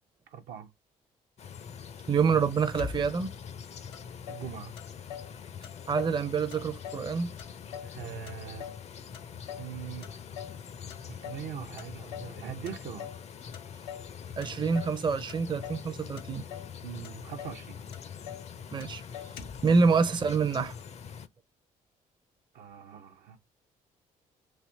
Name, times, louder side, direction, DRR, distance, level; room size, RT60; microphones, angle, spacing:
voice 1, 0.3-0.7 4.3-4.7 7.8-8.7 9.6-10.1 11.0-13.1 16.8-17.8 22.5-23.4, right 9 dB, 75° right, 0.7 m, -41 dB
sound 1, 1.4-21.3, left 7 dB, 40° left, 0.4 m, -44 dB
voice 2, 2.1-3.3 5.9-7.3 14.4-16.4 18.7-19.0 19.6-20.7, right 5 dB, 30° right, 0.5 m, -26 dB
Motor vehicle (road), 2.7-3.4 3.9-4.0 4.3-5.3 5.6-6.2 6.5-7.1 7.4-8.9 9.1-9.7 10.0-10.6 10.9-11.5 11.8-12.4 12.7-13.2 13.5-14.1 14.4-15.0 15.3-15.9 16.2-16.7 17.0-17.1 17.4-17.6 17.9-18.5 18.8-18.9 19.1-19.7, left 8 dB, 90° left, 0.5 m, -43 dB
3.3 x 2.6 x 2.5 m
supercardioid pair, 60°, 16 cm